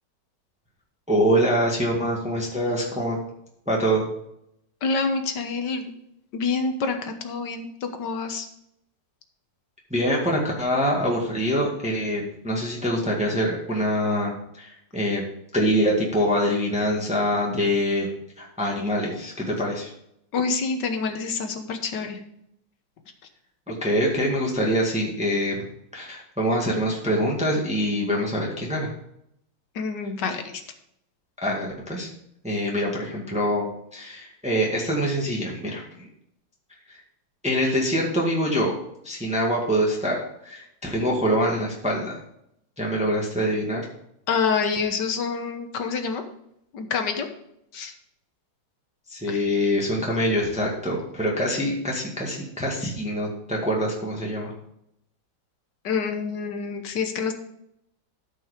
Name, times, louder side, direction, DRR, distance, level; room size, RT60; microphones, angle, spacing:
voice 1, 1.1-3.2 3.7-4.1 9.9-15.2 15.5-18.1 18.4-19.9 23.7-25.6 25.9-28.9 31.4-32.1 32.4-33.7 33.9-36.1 37.4-38.7 39.0-40.2 40.4-42.2 42.8-43.9 49.1-54.5, equal, 5° right, -2 dB, 1.7 m, -24 dB
voice 2, 4.8-5.9 6.3-8.5 20.3-22.2 29.8-30.5 44.3-46.2 46.7-47.3 47.7-47.9 49.3-49.5 55.8-57.3, left 5 dB, 70° left, 6 dB, 1.7 m, -27 dB
12.5 x 5.4 x 5.0 m, 0.76 s
omnidirectional pair, 2.0 m